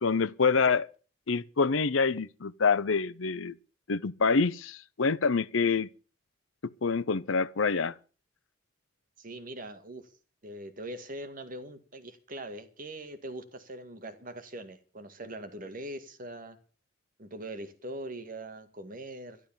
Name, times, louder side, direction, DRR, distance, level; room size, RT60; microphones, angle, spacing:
voice 1, 0.0-0.9 1.3-3.5 3.9-5.9 6.6-7.9, left 4 dB, 85° left, 0.7 m, -26 dB
voice 2, 9.2-10.0 10.4-16.6 17.2-19.4, right 1 dB, 45° right, 1.9 m, -42 dB
12.5 x 12.0 x 7.2 m
head